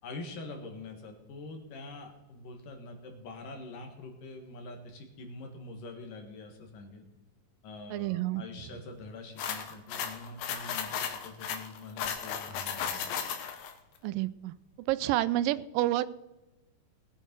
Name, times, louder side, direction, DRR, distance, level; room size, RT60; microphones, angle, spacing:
voice 1, 0.0-7.0 7.6-13.1, left 3 dB, 75° left, 4 dB, 3.4 m, -45 dB
voice 2, 7.9-8.4 14.0-14.5 14.9-16.1, right 15 dB, 85° right, 16 dB, 2.3 m, -29 dB
sound 1, 9.4-13.7, left 8 dB, 90° left, 3.0 m, -35 dB
20.0 x 9.3 x 4.5 m, 0.99 s
omnidirectional pair, 3.9 m